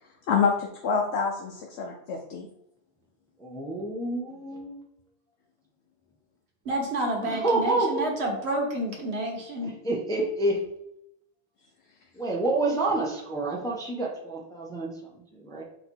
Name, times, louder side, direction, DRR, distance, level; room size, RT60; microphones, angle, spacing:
voice 1, 0.3-2.5, left 5 dB, 90° left, 1 dB, 0.9 m, -27 dB
voice 2, 3.4-4.8 7.2-8.0 9.8-10.6 12.1-14.9 15.3-15.6, right 2 dB, 5° left, -2 dB, 0.5 m, -28 dB
voice 3, 6.6-9.7, right 1 dB, 70° right, 0 dB, 1.4 m, -29 dB
4.0 x 2.9 x 4.3 m, 0.77 s
omnidirectional pair, 1.1 m